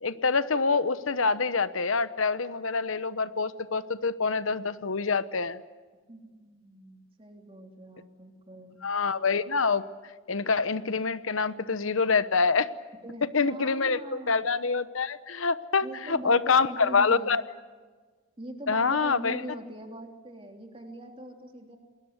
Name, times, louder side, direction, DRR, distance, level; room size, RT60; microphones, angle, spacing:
voice 1, 0.0-5.6 8.8-9.8 10.3-12.7 13.3-14.0 14.3-17.4 18.7-19.4, left 4 dB, 80° left, 14 dB, 1.0 m, -26 dB
voice 2, 6.1-8.8 13.0-14.4 15.8-17.4 18.4-21.8, right 1 dB, 25° right, 4 dB, 3.2 m, -42 dB
28.0 x 21.0 x 8.2 m, 1.4 s
head